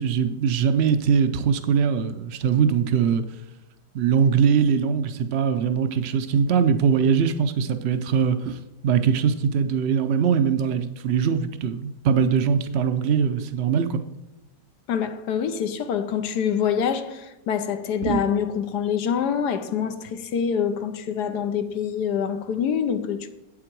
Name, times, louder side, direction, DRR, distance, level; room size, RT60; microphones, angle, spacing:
voice 1, 0.0-3.2 3.9-14.0 18.0-18.2, right 7 dB, 85° right, 0.5 m, -22 dB
voice 2, 14.9-23.3, left 7 dB, 75° left, 1.3 m, -25 dB
8.8 x 7.5 x 4.5 m
omnidirectional pair, 1.8 m